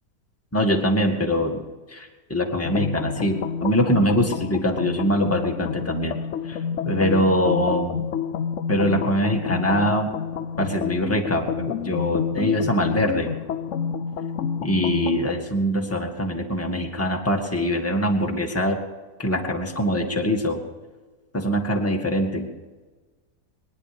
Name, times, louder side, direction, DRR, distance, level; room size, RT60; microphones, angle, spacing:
voice 1, 0.5-6.2 6.4-6.6 6.8-8.0 8.7-10.2 10.6-13.3 14.6-18.8 19.2-20.6 21.3-22.5, equal, 10° left, 1 dB, 1.8 m, -23 dB
sound 1, 2.7-15.4, left 7 dB, 60° left, 0.9 m, -29 dB
22.0 x 10.5 x 5.1 m, 1.3 s
omnidirectional pair, 1.7 m